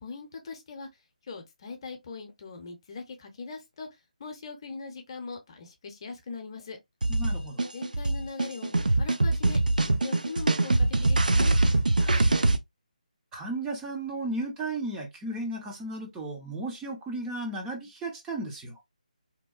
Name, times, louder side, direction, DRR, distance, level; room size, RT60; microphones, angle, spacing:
voice 1, 0.0-0.9 1.3-3.9 4.2-6.8 7.7-8.7 9.0-11.6, left 4 dB, 40° left, 0.7 m, -41 dB
sound 1, 7.0-12.6, right 2 dB, 80° right, 0.4 m, -23 dB
voice 2, 7.1-7.7 12.0-12.4 13.3-18.8, right 2 dB, 10° right, 0.5 m, -35 dB
2.8 x 2.2 x 2.3 m
figure-of-eight pair, 150°, 4 cm